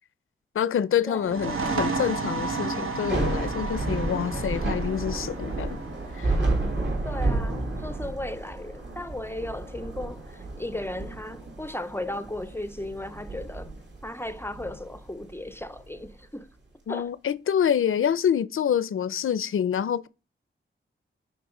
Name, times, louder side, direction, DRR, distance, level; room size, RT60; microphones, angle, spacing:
voice 1, 0.5-5.8 6.2-6.4 16.9-20.1, left 8 dB, 85° left, 0.5 m, -26 dB
voice 2, 1.1-1.8 7.0-13.7 14.0-16.5 16.9-17.1, left 1 dB, 10° left, 0.5 m, -36 dB
sound 1, 1.2-8.6, right 4 dB, 85° right, 1.1 m, -33 dB
Thunder / Rain, 2.9-16.1, right 2 dB, 60° right, 2.2 m, -31 dB
7.9 x 5.5 x 5.0 m
wide cardioid pair, 175°, 21 cm